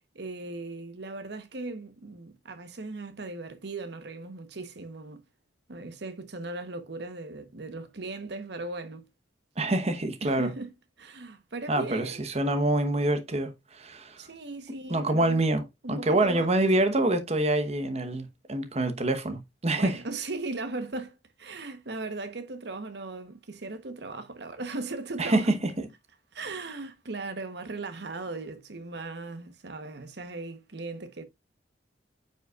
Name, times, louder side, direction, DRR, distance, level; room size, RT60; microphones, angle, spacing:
voice 1, 0.1-5.2 5.7-9.1 10.2-10.7 11.0-12.2 14.2-15.4 15.8-16.5 19.7-25.5 26.3-31.2, right 3 dB, 65° right, 1.0 m, -38 dB
voice 2, 9.6-10.5 11.7-14.2 14.9-15.6 15.9-20.0 25.2-25.5, right 2 dB, 35° right, 1.0 m, -26 dB
9.3 x 5.5 x 2.4 m
head